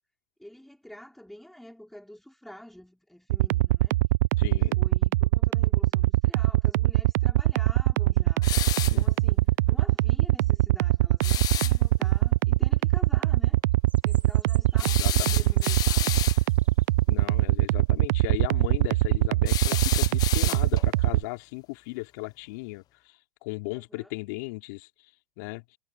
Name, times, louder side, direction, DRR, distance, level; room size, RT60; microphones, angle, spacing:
voice 1, 0.4-4.0 4.5-8.5 8.8-13.6 14.0-16.3 23.7-24.1, equal, ahead, 5.2 m, -48 dB
sound 1, 3.3-21.2, right 17 dB, 70° right, 0.6 m, -22 dB
voice 2, 4.4-4.8 8.9-9.1 14.8-15.5 17.1-24.9 25.4-25.6, left 25 dB, 65° left, 3.1 m, -37 dB
sound 2, 8.4-9.0 11.2-11.8 14.8-16.4 19.5-20.9, left 13 dB, 40° left, 0.7 m, -31 dB
sound 3, 13.7-16.8, right 4 dB, 15° right, 4.4 m, -51 dB
hypercardioid pair, 100°, 10 cm